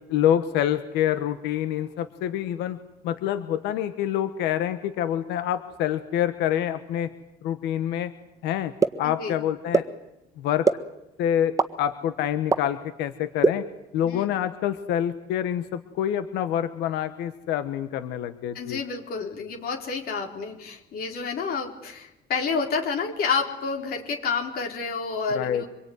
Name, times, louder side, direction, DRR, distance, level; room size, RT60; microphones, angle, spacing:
voice 1, 0.0-2.8 3.0-7.1 7.4-8.1 8.4-8.7 9.0-9.8 10.4-10.7 11.2-13.6 13.9-18.8 25.3-25.6, left 10 dB, 90° left, 11 dB, 1.4 m, -26 dB
sound 1, 8.8-8.9 9.7-9.8 10.6-10.7 11.6-11.7 12.5-12.6 13.4-13.5, right 4 dB, 20° right, 1.6 m, -18 dB
voice 2, 9.0-9.4 14.0-14.3 18.5-25.7, left 5 dB, 65° left, 1 dB, 4.3 m, -29 dB
26.0 x 22.5 x 9.7 m, 0.89 s
cardioid pair, 110°, 17 cm